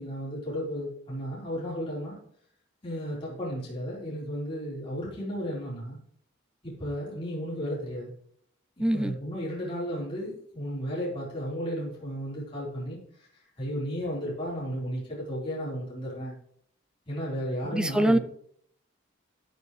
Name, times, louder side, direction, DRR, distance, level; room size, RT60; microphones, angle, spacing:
voice 1, 0.0-2.2 2.8-6.0 6.6-8.1 8.8-13.3 13.6-16.4 17.1-18.2, equal, 25° left, -7 dB, 4.0 m, -34 dB
voice 2, 8.8-9.2 17.7-18.2, right 1 dB, 5° right, 12 dB, 0.4 m, -23 dB
13.0 x 9.4 x 3.2 m, 0.62 s
head